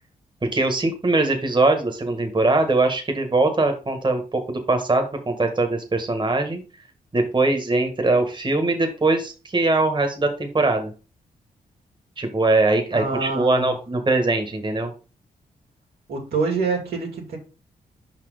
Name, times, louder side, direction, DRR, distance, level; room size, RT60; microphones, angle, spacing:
voice 1, 0.4-6.6 7.1-10.9 12.2-14.9, right 2 dB, 30° right, 1.6 m, -21 dB
voice 2, 12.9-13.7 16.1-17.4, right 4 dB, 75° right, 2.2 m, -26 dB
5.4 x 4.4 x 5.0 m
supercardioid pair, 50°, 16 cm